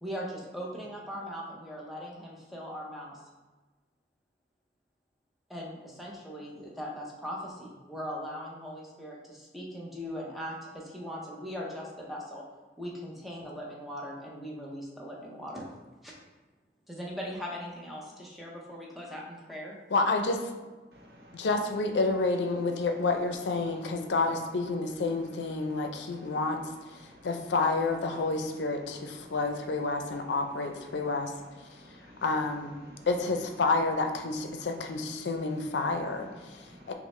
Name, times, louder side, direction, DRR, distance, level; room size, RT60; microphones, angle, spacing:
voice 1, 0.0-3.2 5.5-12.4 12.8-15.7 16.0-16.1 16.9-19.8, equal, ahead, -4 dB, 0.6 m, -40 dB
voice 2, 19.9-20.4 21.3-26.6 27.2-31.3 32.2-32.7 33.1-36.6 36.9-37.0, left 3 dB, 90° left, 5 dB, 0.5 m, -29 dB
voice 3, 20.9-21.5 25.6-25.7 26.1-26.4 27.0-27.3 29.2-29.3 31.7-32.2 32.9-33.1 36.4-36.9, equal, 70° right, 1 dB, 0.7 m, -54 dB
5.9 x 2.0 x 3.1 m, 1.2 s
head